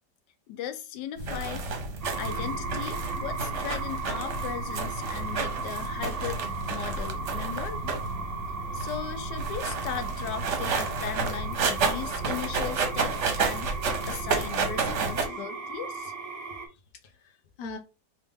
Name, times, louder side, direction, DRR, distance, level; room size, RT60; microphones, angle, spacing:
voice 1, 0.5-1.8 2.2-8.0 8.7-16.1, left 9 dB, 80° left, 1.2 m, -37 dB
sound 1, 1.2-15.3, right 4 dB, 55° right, 0.9 m, -31 dB
sound 2, 2.0-16.7, right 4 dB, 75° right, 0.3 m, -37 dB
voice 2, 15.2-15.7 16.6-17.8, left 3 dB, 40° left, 0.8 m, -44 dB
3.4 x 2.8 x 3.6 m
omnidirectional pair, 1.8 m